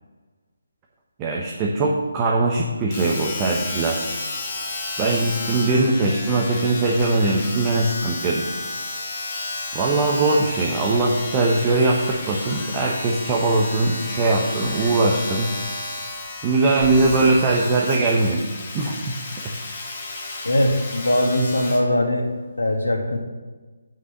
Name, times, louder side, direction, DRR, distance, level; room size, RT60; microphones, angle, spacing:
voice 1, 1.2-4.0 5.0-8.5 9.7-15.5 16.4-18.4 18.7-19.1, right 2 dB, 20° right, -2 dB, 1.0 m, -21 dB
Domestic sounds home sounds, 2.9-21.9 22.6-22.7, left 3 dB, 35° left, 1.8 m, -32 dB
sound 1, 11.3-17.6, right 1 dB, ahead, 3.2 m, -41 dB
voice 2, 20.4-22.3 22.6-23.2, left 1 dB, 85° left, 3 dB, 1.9 m, -21 dB
8.4 x 5.4 x 6.7 m, 1.3 s
figure-of-eight pair, 155°, 0 cm